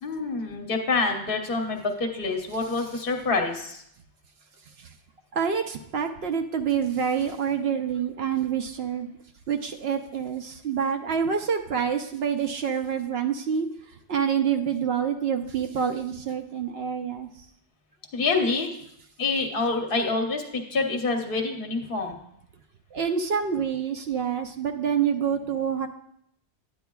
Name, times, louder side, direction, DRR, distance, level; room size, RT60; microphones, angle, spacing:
voice 1, 0.0-3.8 18.1-18.7 19.2-22.2, left 3 dB, 55° left, 3 dB, 1.2 m, -27 dB
voice 2, 5.3-9.1 9.5-13.7 14.1-17.3 22.9-25.9, right 7 dB, 65° right, 5 dB, 0.8 m, -27 dB
10.5 x 8.6 x 2.3 m, 0.73 s
omnidirectional pair, 1.2 m